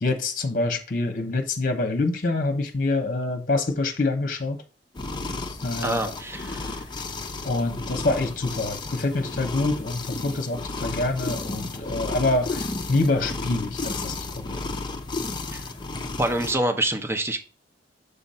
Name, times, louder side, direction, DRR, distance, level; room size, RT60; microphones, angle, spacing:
voice 1, 0.0-4.6 5.6-6.0 7.4-14.6, left 2 dB, 45° left, 0.9 m, -26 dB
sound 1, 4.9-16.5, left 3 dB, 25° left, 0.6 m, -33 dB
voice 2, 5.8-6.8 15.5-15.6 16.2-17.4, right 1 dB, 15° right, 0.7 m, -26 dB
6.8 x 2.6 x 5.5 m
head